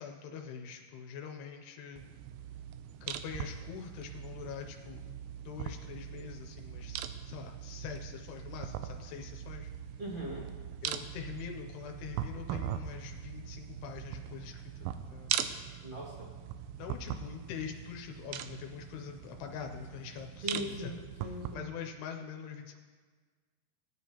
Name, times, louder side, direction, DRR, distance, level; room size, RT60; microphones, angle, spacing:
voice 1, 0.0-2.1 3.0-5.2 5.5-9.7 10.8-14.7 15.1-15.3 16.8-20.9 21.2-22.8, left 7 dB, 85° left, 3 dB, 2.7 m, -44 dB
sound 1, 2.0-21.5, right 10 dB, 80° right, 2.2 m, -41 dB
voice 2, 10.0-10.5 15.8-16.3 20.4-21.7, equal, 25° right, -6 dB, 1.0 m, -40 dB
18.5 x 9.5 x 2.9 m, 1.5 s
omnidirectional pair, 4.6 m